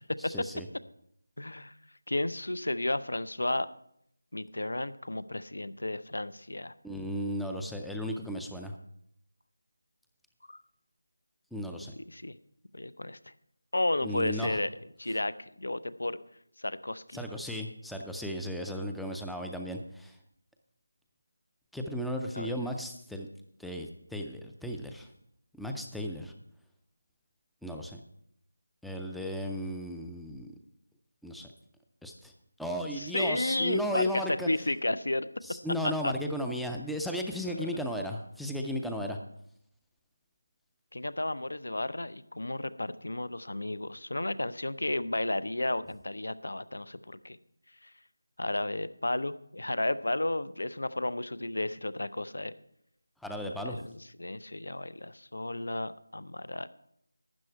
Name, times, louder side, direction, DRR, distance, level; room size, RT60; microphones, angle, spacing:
voice 1, 0.2-0.7 6.8-8.7 11.5-11.9 14.0-14.6 17.1-20.2 21.7-23.3 23.6-25.1 25.5-26.3 27.6-28.0 28.8-30.5 31.2-31.5 32.0-32.3 32.6-34.5 35.4-39.2 53.2-53.8, equal, ahead, 3 dB, 0.4 m, -35 dB
voice 2, 1.4-1.7 2.1-3.7 4.3-6.7 10.5-10.6 12.0-12.4 12.7-13.2 13.7-14.7 15.0-16.2 16.6-17.2 22.3-22.5 32.9-35.3 35.8-36.1 37.4-37.8 40.9-47.4 47.8-47.9 48.4-52.5 53.6-56.7, left 1 dB, 85° left, 15 dB, 0.6 m, -33 dB
12.5 x 8.6 x 4.6 m, 0.72 s
figure-of-eight pair, 175°, 0 cm